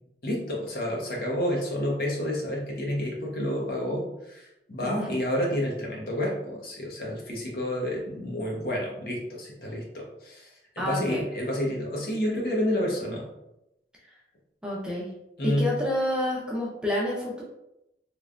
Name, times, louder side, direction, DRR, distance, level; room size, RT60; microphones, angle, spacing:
voice 1, 0.2-10.5 10.7-13.2 15.4-15.7, equal, 55° left, -2 dB, 0.9 m, -29 dB
voice 2, 10.8-11.2 14.6-15.1 15.4-17.4, left 1 dB, 5° right, -4 dB, 0.6 m, -28 dB
3.3 x 3.2 x 2.5 m, 0.87 s
head